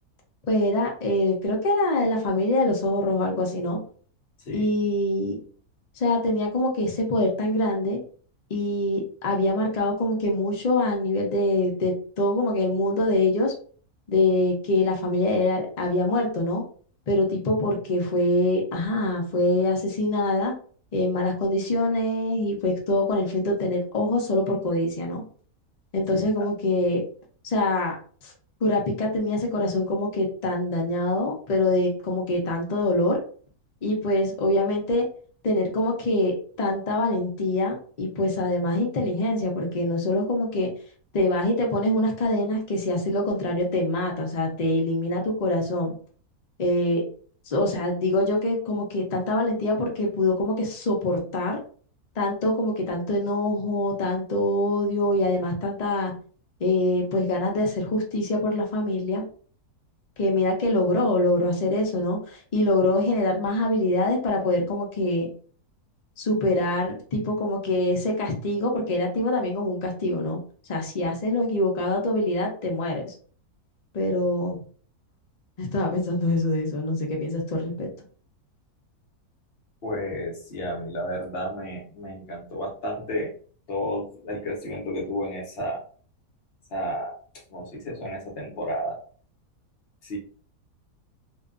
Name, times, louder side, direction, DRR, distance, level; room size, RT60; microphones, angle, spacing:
voice 1, 0.5-3.8 4.5-5.4 6.0-8.0 8.5-13.5 14.1-16.6 17.1-20.5 20.9-25.2 25.9-27.0 27.4-28.0 28.2-28.3 28.6-33.2 33.8-35.0 35.4-40.7 41.1-45.9 46.6-47.0 47.5-51.6 52.2-56.1 56.6-59.2 60.2-65.3 66.2-70.4 70.7-73.1 73.9-74.6 75.6-77.9, left 1 dB, 80° left, 0 dB, 0.3 m, -24 dB
voice 2, 79.8-83.3 83.7-85.8 86.7-87.2 87.5-89.0 90.0-90.2, equal, 50° left, -2 dB, 0.8 m, -31 dB
2.6 x 2.3 x 2.4 m, 0.43 s
omnidirectional pair, 1.6 m